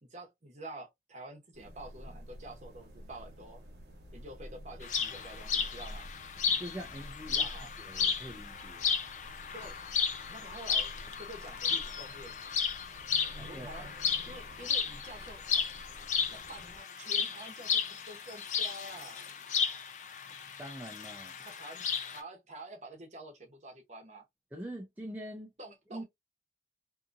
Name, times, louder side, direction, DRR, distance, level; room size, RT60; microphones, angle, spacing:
voice 1, 0.0-3.6 4.1-6.1 7.3-7.7 9.5-9.8 10.3-10.9 11.2-12.4 13.4-13.9 14.3-15.6 16.3-19.2 21.4-21.8 22.1-24.2 25.6-26.0, right 1 dB, 40° right, 0.9 m, -48 dB
sound 1, 1.5-16.8, equal, 70° right, 1.0 m, -50 dB
sound 2, 4.8-22.2, left 6 dB, 45° left, 0.5 m, -34 dB
voice 2, 6.5-9.0 13.4-13.8 20.6-21.3 24.5-25.5 25.9-26.0, right 1 dB, 10° right, 0.5 m, -44 dB
2.7 x 2.6 x 2.4 m
head